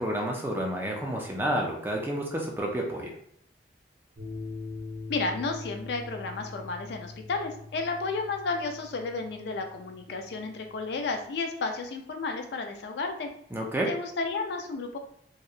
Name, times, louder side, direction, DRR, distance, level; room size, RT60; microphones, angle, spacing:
voice 1, 0.0-3.1 13.5-13.9, right 1 dB, 10° right, 0 dB, 0.3 m, -30 dB
sound 1, 4.2-11.2, left 3 dB, 70° right, 0.9 m, -43 dB
voice 2, 5.1-13.3 13.9-15.0, left 3 dB, 65° left, 5 dB, 0.3 m, -32 dB
2.7 x 2.1 x 2.3 m, 0.66 s
head